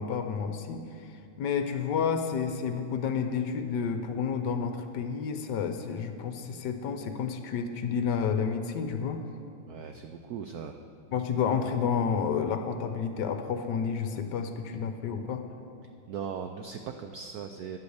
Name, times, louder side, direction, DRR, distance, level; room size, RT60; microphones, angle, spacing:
voice 1, 0.0-9.2 11.1-15.4, left 6 dB, 70° left, 7 dB, 1.2 m, -30 dB
voice 2, 9.7-10.7 16.1-17.8, right 7 dB, 80° right, 6 dB, 0.8 m, -38 dB
10.5 x 8.4 x 7.8 m, 2.5 s
omnidirectional pair, 2.2 m